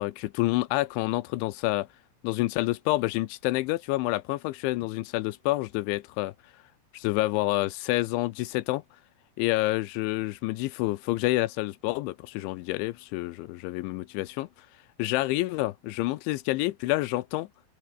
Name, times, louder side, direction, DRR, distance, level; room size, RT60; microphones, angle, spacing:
voice 1, 0.0-1.9 2.2-6.3 6.9-8.8 9.4-14.5 15.0-17.5, left 19 dB, 85° left, 3.1 m, -28 dB
open air
omnidirectional pair, 5.5 m